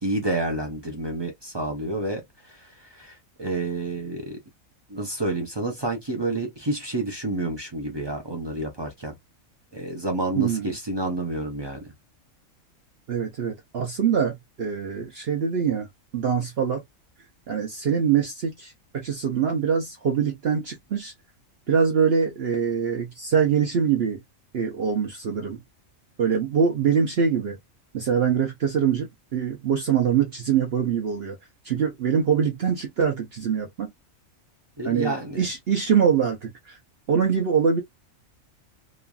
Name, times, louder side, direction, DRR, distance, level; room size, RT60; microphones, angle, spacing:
voice 1, 0.0-4.4 4.9-9.2 9.7-11.9 34.8-35.4, right 2 dB, 30° right, 0.5 m, -29 dB
voice 2, 10.4-10.7 13.1-15.9 16.1-16.8 17.5-21.1 21.7-24.2 24.5-25.6 26.2-27.6 27.9-31.4 31.6-33.9 34.8-36.8 37.1-37.8, right 7 dB, 55° right, 0.8 m, -24 dB
3.0 x 2.5 x 2.3 m
omnidirectional pair, 1.4 m